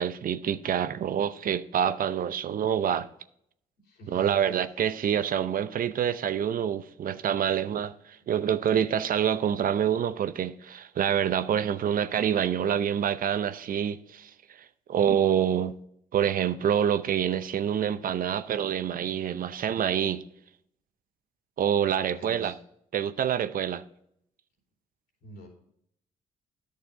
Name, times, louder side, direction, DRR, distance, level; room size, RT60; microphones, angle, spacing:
voice 1, 0.0-3.1 4.1-15.7 16.1-20.2 21.6-22.5 22.9-23.8, right 9 dB, 60° right, 0.7 m, -27 dB
voice 2, 3.8-4.4 22.0-22.6 25.2-25.5, equal, 75° left, 3.4 m, -46 dB
10.0 x 6.7 x 3.7 m
supercardioid pair, 55°, 17 cm